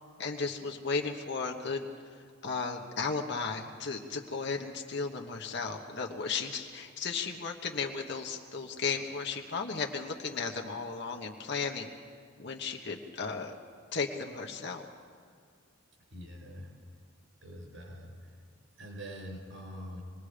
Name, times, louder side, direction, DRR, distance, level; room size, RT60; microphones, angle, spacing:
voice 1, 0.2-1.9 2.4-11.9 12.4-13.6 13.9-14.8, left 4 dB, 55° left, 2 dB, 1.1 m, -35 dB
voice 2, 16.1-16.7 17.4-18.2 18.8-20.0, equal, 70° right, 0 dB, 6.2 m, -44 dB
26.5 x 20.0 x 5.1 m, 2.1 s
head